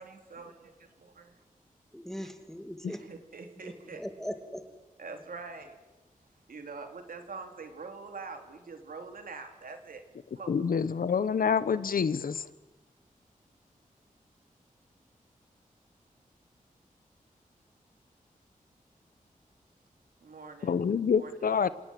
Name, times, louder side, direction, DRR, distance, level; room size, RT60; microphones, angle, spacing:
voice 1, 0.0-1.4 2.9-4.1 5.0-5.8 6.5-10.0 10.3-10.7 20.2-20.8 21.2-21.5, right 4 dB, 85° right, 2.9 m, -44 dB
voice 2, 1.9-3.0 3.6-4.7, equal, 5° left, 2.7 m, -40 dB
voice 3, 10.5-12.5 20.6-21.7, left 6 dB, 85° left, 1.0 m, -27 dB
27.5 x 18.0 x 7.7 m
wide cardioid pair, 85°, 14 cm